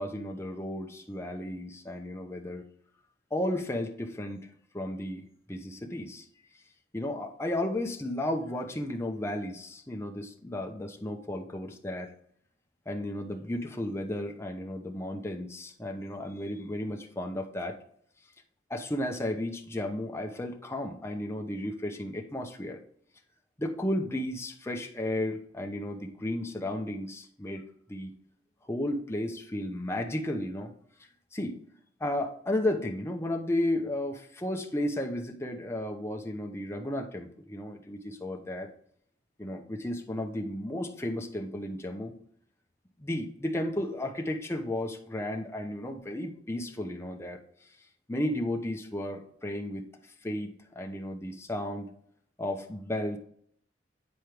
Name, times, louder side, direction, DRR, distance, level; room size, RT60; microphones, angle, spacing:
voice 1, 0.0-2.6 3.3-4.5 4.7-6.2 6.9-12.1 12.9-17.8 18.7-22.8 23.6-27.6 27.9-28.1 28.6-30.7 31.3-31.6 32.0-38.7 39.4-42.1 43.0-47.4 48.1-51.9 52.4-53.2, left 1 dB, 15° left, 2 dB, 0.7 m, -33 dB
9.3 x 4.5 x 3.4 m, 0.66 s
head